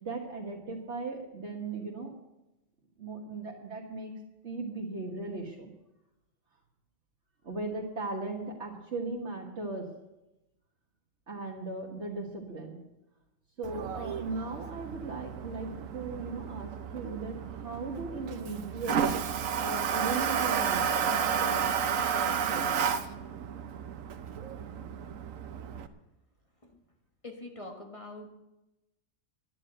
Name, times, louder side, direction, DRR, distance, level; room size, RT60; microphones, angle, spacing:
voice 1, 0.0-2.1 3.0-4.1 4.4-5.7 7.4-9.9 11.3-12.8 13.6-19.3 19.6-22.9, right 3 dB, 60° right, -2 dB, 1.8 m, -38 dB
Toilet flush, 13.6-25.9, right 7 dB, 90° right, 1.2 m, -32 dB
voice 2, 27.2-28.3, left 2 dB, 25° left, 2 dB, 1.4 m, -44 dB
11.0 x 9.6 x 7.8 m, 0.95 s
omnidirectional pair, 1.3 m